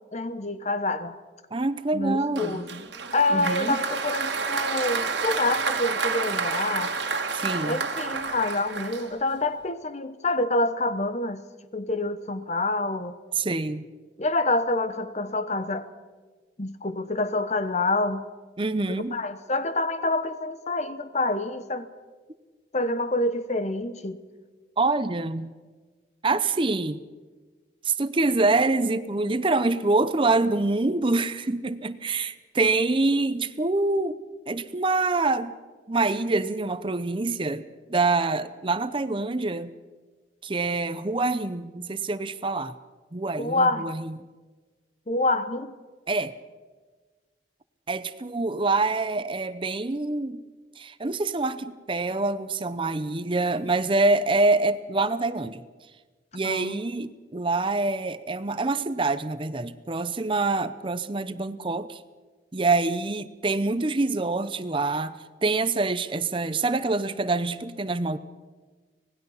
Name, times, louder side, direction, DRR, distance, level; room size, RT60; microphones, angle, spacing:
voice 1, 0.1-1.2 1.9-2.8 3.1-6.9 7.6-11.4 11.7-13.2 14.2-15.9 16.6-18.3 18.9-21.9 22.7-24.2 43.4-43.9 45.1-45.7 56.4-56.8, left 2 dB, 40° left, 12 dB, 1.0 m, -27 dB
voice 2, 1.5-2.6 3.3-3.8 7.3-7.8 13.4-13.9 18.6-19.2 24.8-25.5 26.2-27.0 27.8-35.5 35.9-39.7 40.4-42.8 43.1-44.2 46.1-46.4 47.9-50.4 50.8-55.6 56.3-62.0 62.5-68.2, right 3 dB, 30° right, 13 dB, 0.7 m, -26 dB
Applause, 2.4-9.5, right 4 dB, 85° right, 2.0 m, -29 dB
25.5 x 19.0 x 5.6 m, 1.4 s
head